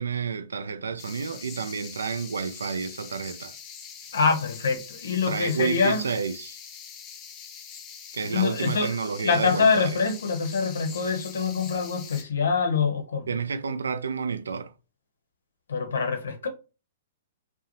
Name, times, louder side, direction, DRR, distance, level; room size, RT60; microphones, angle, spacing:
voice 1, 0.0-3.5 5.3-6.6 8.1-10.0 13.3-14.7, right 5 dB, 80° right, 0.3 m, -30 dB
sound 1, 1.0-12.2, left 7 dB, 30° left, 0.5 m, -43 dB
voice 2, 4.1-6.1 8.3-13.3 15.7-16.5, left 5 dB, 75° left, 0.6 m, -25 dB
2.6 x 2.1 x 2.9 m
hypercardioid pair, 115°, 0 cm